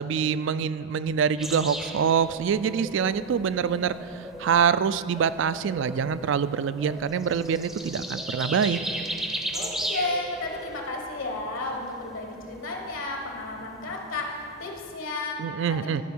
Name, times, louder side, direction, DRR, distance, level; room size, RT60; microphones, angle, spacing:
voice 1, 0.0-4.0 4.4-8.8 15.4-16.0, right 7 dB, 65° right, 15 dB, 0.3 m, -25 dB
sound 1, 1.4-14.9, right 1 dB, ahead, 0.5 m, -37 dB
voice 2, 9.5-16.0, left 2 dB, 75° left, 1 dB, 1.2 m, -33 dB
13.0 x 4.6 x 6.1 m, 2.6 s
head